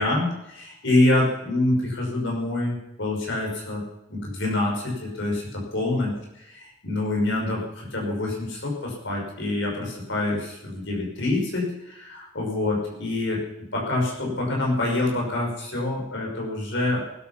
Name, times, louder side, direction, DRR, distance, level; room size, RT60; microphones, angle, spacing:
voice 1, 0.0-3.8 4.1-6.1 6.5-13.4 13.7-17.1, left 2 dB, 60° left, -1 dB, 6.0 m, -26 dB
19.5 x 12.5 x 5.9 m, 0.91 s
head